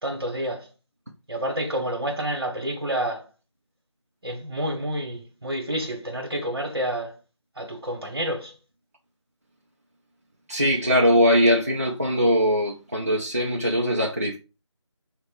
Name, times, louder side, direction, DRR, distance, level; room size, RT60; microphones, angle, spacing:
voice 1, 0.0-0.7 1.3-3.3 4.2-7.2 7.6-8.5, right 1 dB, 55° right, 1.3 m, -29 dB
voice 2, 10.5-14.4, equal, 30° right, 0.5 m, -21 dB
4.6 x 2.2 x 4.5 m
figure-of-eight pair, 175°, 16 cm